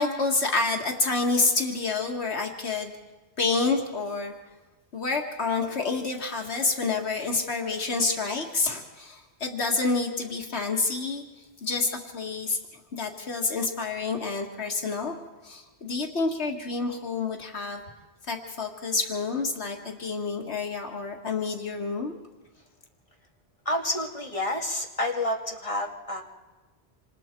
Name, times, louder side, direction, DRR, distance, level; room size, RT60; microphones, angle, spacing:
voice 1, 0.0-2.9 3.4-4.3 4.9-11.2 11.6-12.6 12.9-15.2 15.4-17.8 18.3-22.1, left 3 dB, 85° left, 2 dB, 2.1 m, -28 dB
voice 2, 23.7-26.2, left 1 dB, 30° left, 1 dB, 2.4 m, -29 dB
27.0 x 27.0 x 4.5 m, 1.2 s
omnidirectional pair, 1.1 m